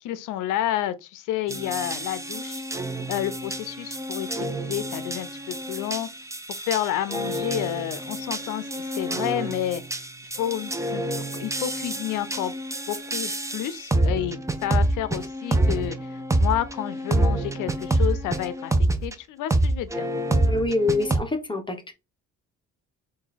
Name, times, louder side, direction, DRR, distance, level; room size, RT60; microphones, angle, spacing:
voice 1, 0.0-2.6 3.1-6.1 6.6-9.8 10.4-12.5 12.9-18.7 19.0-20.1, left 12 dB, 90° left, 0.5 m, -30 dB
sound 1, 1.5-19.1 19.5-21.2, right 1 dB, 10° right, 0.6 m, -27 dB
voice 2, 20.5-21.9, left 2 dB, 15° left, 1.0 m, -25 dB
3.9 x 2.6 x 4.0 m
cardioid pair, 90°, 30 cm